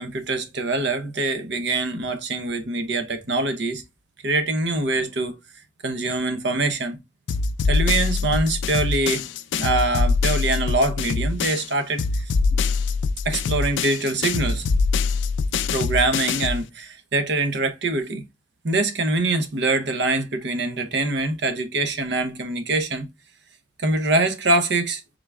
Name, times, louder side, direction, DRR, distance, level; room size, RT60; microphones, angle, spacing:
voice 1, 0.0-3.8 4.2-5.3 5.8-7.0 7.7-9.3 9.6-12.2 13.2-14.7 15.7-18.3 18.6-23.1 23.8-25.0, right 2 dB, 60° right, 0.8 m, -24 dB
sound 1, 7.3-11.7 12.0-16.6, left 4 dB, 70° left, 0.4 m, -23 dB
3.7 x 3.4 x 3.5 m
head